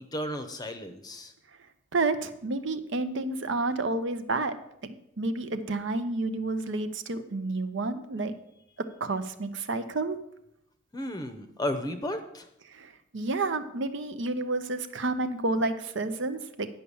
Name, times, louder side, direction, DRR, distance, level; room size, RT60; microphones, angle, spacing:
voice 1, 0.0-1.3 10.9-12.5, left 1 dB, 20° left, 8 dB, 0.7 m, -34 dB
voice 2, 1.9-4.5 4.8-8.3 9.0-10.2 12.7-16.7, right 2 dB, 65° right, 10 dB, 0.7 m, -30 dB
9.8 x 5.7 x 7.0 m, 0.78 s
head